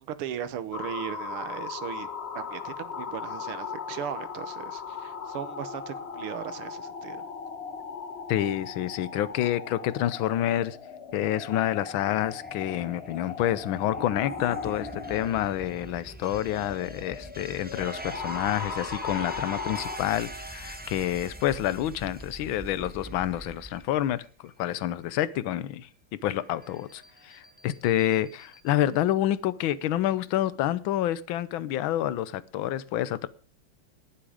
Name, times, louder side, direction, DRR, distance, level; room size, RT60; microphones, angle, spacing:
voice 1, 0.0-2.1 2.3-7.2, right 10 dB, 85° right, 1.9 m, -37 dB
sound 1, 0.7-20.0, left 6 dB, 45° left, 0.9 m, -38 dB
voice 2, 8.3-10.8 11.1-25.9 26.2-33.3, left 12 dB, 75° left, 1.5 m, -28 dB
sound 2, 11.7-24.7 26.4-28.8 30.0-30.5, right 1 dB, 10° right, 0.7 m, -43 dB
19.0 x 7.6 x 5.0 m
omnidirectional pair, 2.4 m